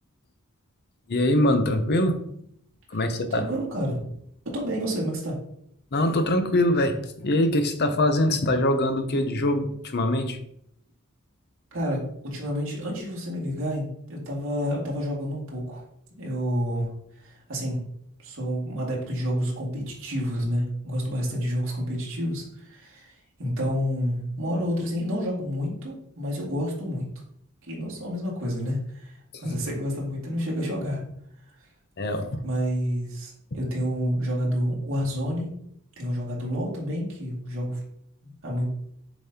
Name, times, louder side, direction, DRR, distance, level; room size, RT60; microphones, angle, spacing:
voice 1, 1.1-2.2 2.9-3.5 5.9-10.4 32.0-32.4, left 1 dB, 50° left, 8 dB, 0.7 m, -23 dB
voice 2, 3.3-4.0 4.5-5.4 11.7-15.8 16.2-16.9 17.2-17.8 18.2-27.1 27.7-31.0 32.4-35.5 36.0-37.8 38.2-38.8, equal, 65° right, -4 dB, 2.3 m, -29 dB
7.1 x 5.2 x 2.8 m, 0.71 s
head